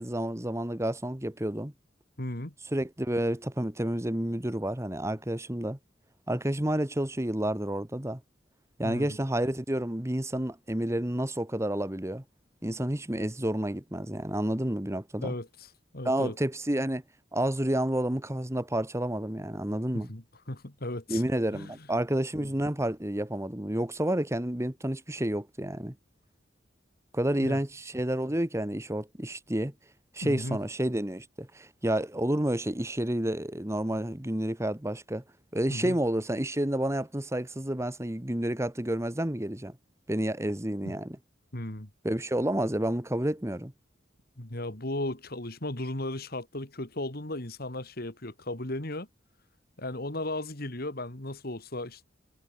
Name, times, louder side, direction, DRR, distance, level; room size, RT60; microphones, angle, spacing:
voice 1, 0.0-1.7 2.7-5.8 6.3-8.2 8.8-12.2 12.6-15.3 16.0-17.0 17.3-20.1 21.1-25.9 27.1-29.7 30.1-35.2 35.5-39.8 40.1-41.2 42.0-43.7, right 1 dB, 15° right, 1.4 m, -30 dB
voice 2, 2.2-2.5 8.8-9.2 15.2-16.4 19.9-21.2 21.5-21.7 22.4-22.5 27.4-27.6 30.2-30.6 35.7-36.0 40.8-40.9 41.5-41.9 44.4-49.1 49.8-52.0, left 1 dB, 50° left, 2.8 m, -36 dB
head